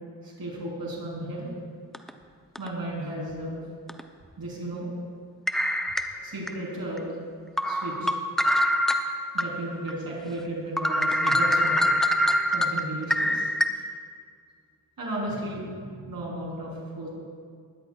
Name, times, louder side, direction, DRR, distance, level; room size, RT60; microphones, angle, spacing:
voice 1, 0.2-1.5 2.6-3.6 4.4-4.9 6.2-7.2 7.7-8.2 9.3-13.8 15.0-16.7 17.0-17.1, right 1 dB, 80° right, -4 dB, 3.8 m, -34 dB
sound 1, 1.9-2.1 2.6-2.7 3.9-4.0 5.5-6.5 7.0-7.1 7.6-9.5 9.9-10.0 10.4-10.5 10.8-13.7, equal, ahead, 0.7 m, -24 dB
19.0 x 13.0 x 2.4 m, 2.1 s
wide cardioid pair, 75°, 35 cm